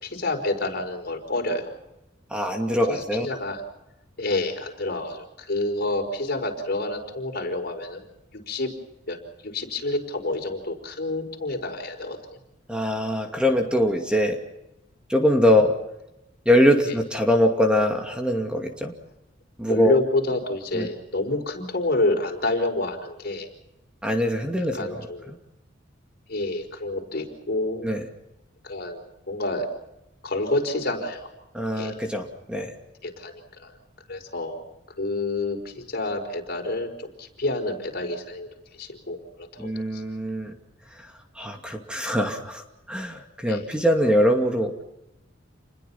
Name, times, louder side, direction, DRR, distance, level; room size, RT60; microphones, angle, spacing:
voice 1, 0.0-1.7 2.9-3.6 4.2-8.0 8.3-8.7 9.1-12.4 16.9-17.0 19.6-23.5 24.7-25.3 26.3-27.9 28.6-29.7 30.2-31.3 31.7-31.9 33.0-33.8 34.1-34.6 35.0-38.5 38.8-40.0 43.5-43.6, left 2 dB, 55° left, 3 dB, 5.0 m, -28 dB
voice 2, 2.3-3.3 12.7-14.4 15.1-15.7 16.5-18.9 19.6-20.0 20.7-20.9 24.0-25.0 25.3-25.4 27.8-28.0 31.5-32.7 39.6-40.6 40.9-44.8, equal, 5° right, 3 dB, 2.5 m, -23 dB
29.0 x 21.5 x 5.8 m, 0.88 s
head